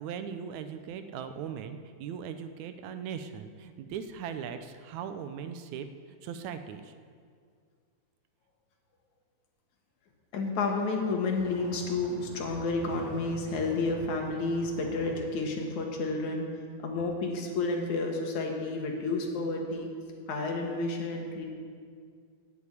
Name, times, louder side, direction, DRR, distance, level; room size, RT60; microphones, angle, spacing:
voice 1, 0.0-6.9, right 7 dB, 80° right, 9 dB, 2.0 m, -39 dB
voice 2, 10.3-16.4 16.8-19.9 20.3-21.5, left 3 dB, 80° left, 1 dB, 2.9 m, -30 dB
sound 1, 11.3-15.1, equal, 60° right, 2.9 m, -46 dB
9.4 x 9.1 x 8.5 m, 2.1 s
omnidirectional pair, 3.3 m